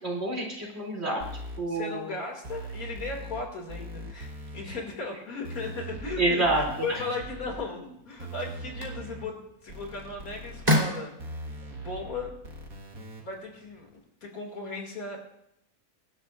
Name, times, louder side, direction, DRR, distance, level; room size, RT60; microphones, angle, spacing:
voice 1, 0.0-1.2 1.6-2.1 4.6-4.8 6.2-6.6 6.9-7.0, right 2 dB, 45° right, -1 dB, 3.4 m, -28 dB
sound 1, 1.2-1.6 2.4-3.4 3.7-4.6 5.4-7.6 8.2-9.3 9.7-10.7 11.2-13.2, right 2 dB, 70° right, 2.1 m, -40 dB
voice 2, 1.7-12.4 13.2-15.2, left 3 dB, 70° left, 1 dB, 3.0 m, -37 dB
sound 2, 7.8-14.0, left 1 dB, 25° right, 3.2 m, -34 dB
25.0 x 11.5 x 2.5 m, 0.78 s
omnidirectional pair, 1.6 m